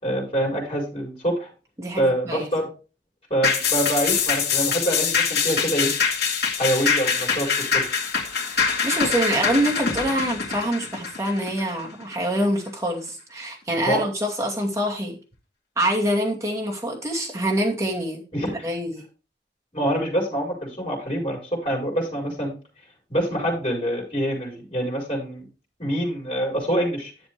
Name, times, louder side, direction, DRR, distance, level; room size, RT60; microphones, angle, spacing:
voice 1, 0.0-1.5 2.0-2.7 3.3-6.0 6.6-7.8 13.8-14.1 18.3-18.6 19.7-22.5 23.1-25.5 25.8-27.1, right 1 dB, 35° left, -1 dB, 5.0 m, -25 dB
voice 2, 1.8-2.5 8.5-15.2 15.8-19.0, right 1 dB, 15° right, -2 dB, 2.4 m, -25 dB
sound 1, 3.4-12.1 12.5-12.6, left 6 dB, 65° left, 2.1 m, -24 dB
11.0 x 7.2 x 3.3 m, 0.34 s
head